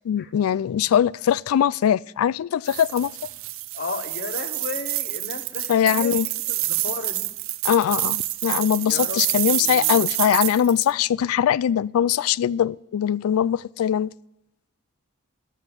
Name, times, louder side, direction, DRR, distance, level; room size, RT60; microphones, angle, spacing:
voice 1, 0.1-3.1 5.7-6.3 7.6-14.1, left 9 dB, 85° left, 0.3 m, -21 dB
sound 1, 2.7-10.9, right 17 dB, 70° right, 0.6 m, -27 dB
voice 2, 3.7-6.2 6.5-7.3 8.8-10.0, left 3 dB, 50° left, 1.0 m, -35 dB
13.0 x 7.1 x 5.8 m
head